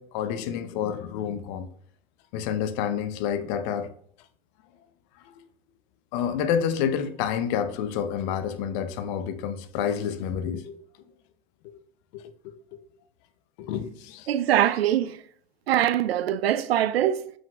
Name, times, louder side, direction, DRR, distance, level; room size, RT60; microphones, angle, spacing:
voice 1, 0.0-1.7 2.3-3.9 5.2-5.5 6.1-10.8 11.6-11.8 12.1-12.5 13.6-14.3, left 8 dB, 50° left, 0.8 m, -29 dB
voice 2, 14.3-15.2 15.7-17.3, right 11 dB, 80° right, 0.5 m, -23 dB
6.7 x 6.3 x 2.3 m
hypercardioid pair, 95°, 30 cm